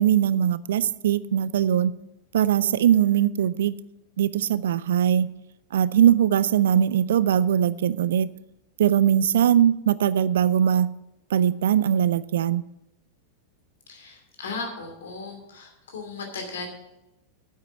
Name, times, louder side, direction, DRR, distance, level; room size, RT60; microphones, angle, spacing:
voice 1, 0.0-1.9 2.3-3.7 4.2-5.3 5.7-8.3 8.8-10.9 11.3-12.6, right 10 dB, 60° right, 19 dB, 0.4 m, -21 dB
voice 2, 13.9-16.7, left 4 dB, 65° left, 3 dB, 2.8 m, -36 dB
8.9 x 8.1 x 8.2 m, 0.92 s
figure-of-eight pair, 90°, 0 cm